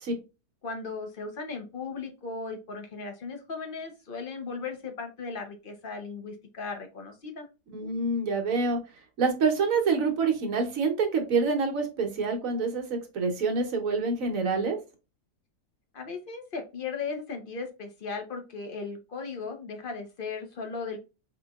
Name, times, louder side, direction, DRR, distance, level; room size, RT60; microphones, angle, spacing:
voice 1, 0.6-7.5 15.9-21.0, left 4 dB, 45° left, 5 dB, 0.7 m, -37 dB
voice 2, 7.7-8.8 9.2-14.8, right 4 dB, 60° right, 4 dB, 1.3 m, -26 dB
4.8 x 3.0 x 2.3 m, 0.29 s
omnidirectional pair, 1.7 m